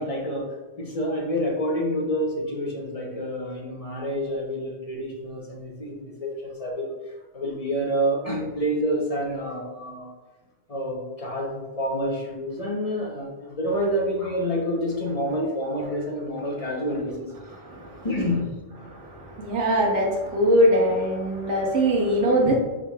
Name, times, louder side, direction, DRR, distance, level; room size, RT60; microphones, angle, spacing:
voice 1, 0.0-7.0 7.3-10.1 10.7-17.3 18.0-18.5, equal, 40° left, 0 dB, 0.7 m, -28 dB
voice 2, 17.6-18.1 18.8-22.5, equal, 85° right, -2 dB, 1.2 m, -22 dB
4.9 x 4.8 x 2.2 m, 1.2 s
omnidirectional pair, 1.2 m